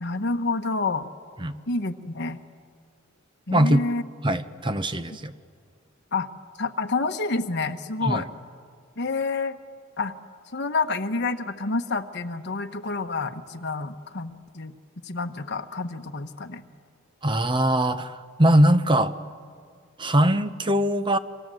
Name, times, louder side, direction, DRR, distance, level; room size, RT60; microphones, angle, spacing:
voice 1, 0.0-1.1 1.7-2.4 3.5-4.0 6.1-6.3 6.6-8.2 9.0-9.6 10.0-10.1 10.5-14.7 15.0-16.6, left 3 dB, 55° left, 6 dB, 1.2 m, -28 dB
voice 2, 3.5-3.8 4.2-5.3 8.0-8.3 17.2-19.1 20.0-21.2, right 1 dB, 25° right, 11 dB, 0.8 m, -21 dB
28.5 x 26.0 x 7.8 m, 2.2 s
head